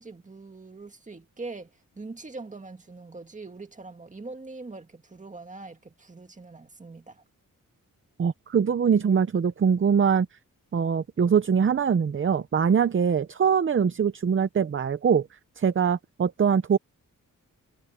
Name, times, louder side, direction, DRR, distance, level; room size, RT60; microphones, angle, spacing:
voice 1, 0.0-7.2, right 3 dB, 20° right, 1.9 m, -42 dB
voice 2, 8.2-10.3 10.7-15.3 15.6-16.8, right 7 dB, 40° right, 0.7 m, -23 dB
wide cardioid pair, 165°, 33 cm